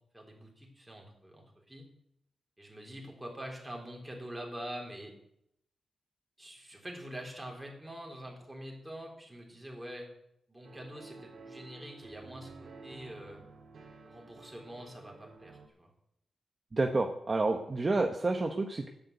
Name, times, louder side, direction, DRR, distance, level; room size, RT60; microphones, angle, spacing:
voice 1, 0.1-1.9 2.6-5.2 6.4-10.1 10.5-13.4 14.0-15.9, equal, 5° right, 0 dB, 3.7 m, -45 dB
sound 1, 10.6-15.7, right 4 dB, 65° right, 2.3 m, -52 dB
voice 2, 16.7-18.9, right 3 dB, 30° right, 3 dB, 1.0 m, -29 dB
12.0 x 9.8 x 8.0 m, 0.78 s
wide cardioid pair, 130°, 0 cm